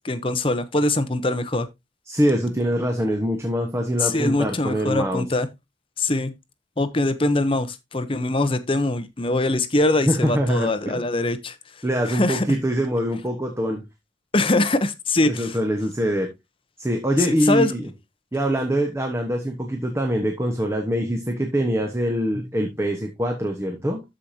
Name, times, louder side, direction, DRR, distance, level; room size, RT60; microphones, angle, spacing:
voice 1, 0.0-1.7 4.0-5.5 6.0-6.3 6.8-11.6 12.1-12.5 14.3-15.6 17.5-17.7, left 2 dB, 30° left, 0.8 m, -22 dB
voice 2, 2.1-5.3 10.1-11.0 11.8-13.8 15.2-16.3 16.8-17.8 18.3-24.0, equal, 15° right, 1.1 m, -24 dB
13.5 x 5.1 x 2.8 m
head